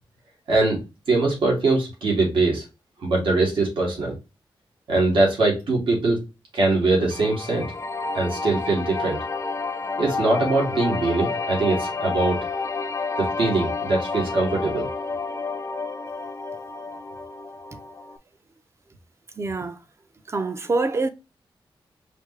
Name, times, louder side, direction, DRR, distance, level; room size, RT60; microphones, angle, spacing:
voice 1, 0.5-0.8 1.1-2.6 3.0-4.1 4.9-6.2 6.5-7.7 8.1-9.2 10.0-12.4 13.2-14.9, right 3 dB, 75° right, 2.0 m, -22 dB
sound 1, 7.1-18.2, left 4 dB, 35° left, 0.4 m, -30 dB
voice 2, 19.4-19.8 20.3-21.1, right 3 dB, 30° right, 0.6 m, -25 dB
5.0 x 2.8 x 3.1 m
wide cardioid pair, 130°, 9 cm